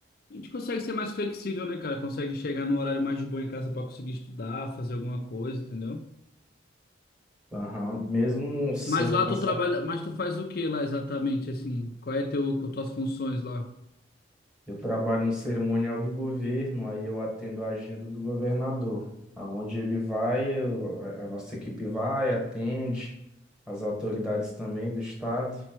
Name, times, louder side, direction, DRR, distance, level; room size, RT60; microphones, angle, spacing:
voice 1, 0.3-6.0 8.9-13.7, left 2 dB, 50° left, 4 dB, 0.5 m, -30 dB
voice 2, 7.5-9.2 9.5-9.6 14.7-19.0 19.4-23.1 23.7-25.6, left 1 dB, 5° right, -3 dB, 1.5 m, -30 dB
5.1 x 4.3 x 4.5 m, 0.86 s
head